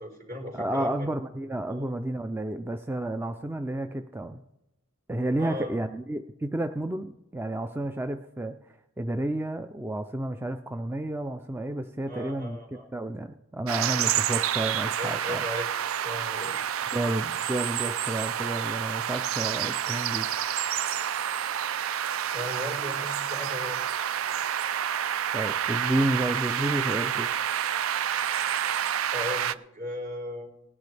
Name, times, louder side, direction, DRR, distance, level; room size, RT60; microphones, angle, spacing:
voice 1, 0.0-1.1 1.7-1.8 5.4-5.8 12.1-12.9 14.9-15.7 16.0-16.6 21.2-21.3 22.3-23.8 29.1-30.5, left 1 dB, 55° right, -1 dB, 4.1 m, -37 dB
voice 2, 0.5-4.4 5.1-12.6 12.9-15.5 16.9-20.3 25.3-27.3, right 1 dB, 10° right, 7 dB, 0.4 m, -31 dB
sound 1, 13.7-29.5, right 10 dB, 75° right, 0.4 m, -29 dB
19.0 x 11.0 x 3.3 m, 0.90 s
head